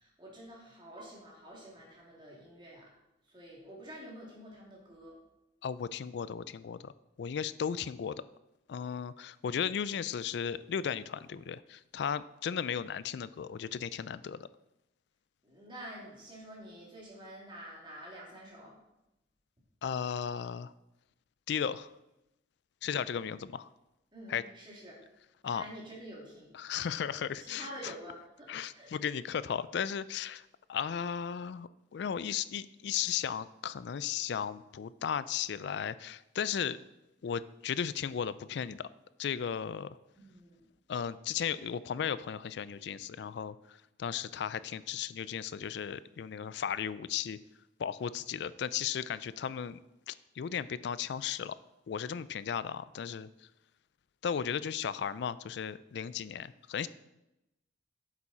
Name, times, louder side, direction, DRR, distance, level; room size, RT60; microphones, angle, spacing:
voice 1, 0.0-2.9 3.3-5.2 15.4-18.7 22.9-23.1 24.1-25.0 25.4-26.5 27.0-28.9 40.2-40.6, equal, 25° right, -3 dB, 2.8 m, -48 dB
voice 2, 5.6-6.9 7.2-8.1 8.7-14.5 19.8-20.7 21.5-21.9 22.8-23.7 24.3-24.4 25.4-25.6 26.5-27.9 28.5-36.8 37.2-38.9 39.2-40.0 40.9-47.4 47.8-49.8 50.1-51.6 51.9-53.3 54.2-56.9, left 8 dB, 65° left, 17 dB, 0.3 m, -35 dB
8.4 x 7.1 x 4.3 m, 0.91 s
head